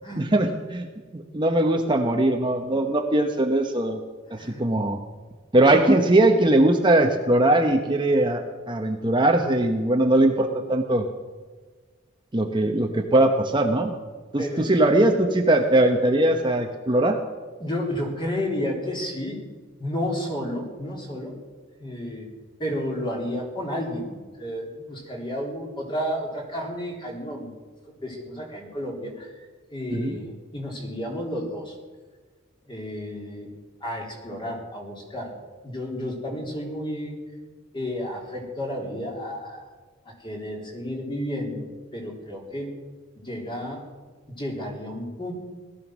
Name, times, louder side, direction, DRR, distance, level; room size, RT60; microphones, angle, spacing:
voice 1, 0.1-0.9 1.1-4.0 4.3-5.0 5.5-11.1 12.3-13.9 14.3-17.2 29.9-30.2, right 1 dB, 25° right, 4 dB, 0.9 m, -20 dB
voice 2, 4.3-4.6 14.4-14.9 16.9-17.0 17.6-19.4 19.8-21.3 21.8-22.3 22.6-24.1 24.4-27.5 27.9-29.4 29.7-31.7 32.7-33.5 33.8-35.3 35.6-37.2 37.7-39.7 40.1-41.7 41.9-42.8 43.2-43.8 44.3-45.3, equal, 25° left, 0 dB, 3.5 m, -31 dB
18.0 x 12.5 x 6.2 m, 1.4 s
head